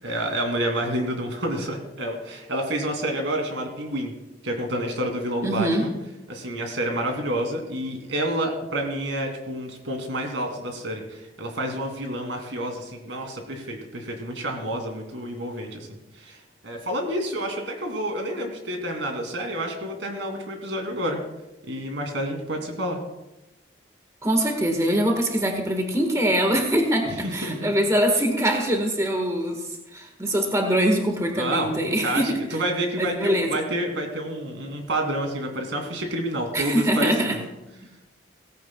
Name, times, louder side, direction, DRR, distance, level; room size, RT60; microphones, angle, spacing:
voice 1, 0.0-4.1 4.4-5.9 6.3-15.9 16.2-21.2 21.7-23.0 27.1-27.7 31.4-37.4, right 1 dB, 80° right, 3 dB, 2.7 m, -29 dB
voice 2, 5.4-5.8 24.2-29.6 29.9-32.3 33.0-33.5 36.5-37.4, right 1 dB, 15° right, 3 dB, 1.5 m, -23 dB
17.5 x 15.5 x 2.3 m, 0.97 s
head